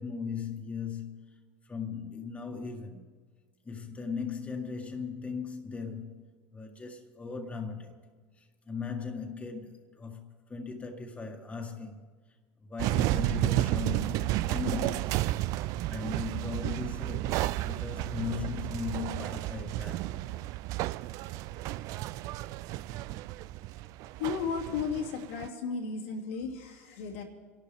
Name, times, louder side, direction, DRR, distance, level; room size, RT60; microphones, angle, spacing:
voice 1, 0.0-1.4 1.6-3.1 3.6-6.2 6.5-7.9 8.4-12.1 12.7-15.2 15.6-20.3, left 5 dB, 20° left, 2.0 m, -38 dB
sound 1, 12.8-25.5, right 16 dB, 60° right, 0.4 m, -32 dB
voice 2, 24.2-27.2, left 5 dB, 85° left, 2.9 m, -34 dB
27.0 x 12.0 x 3.6 m
hypercardioid pair, 85°, 7 cm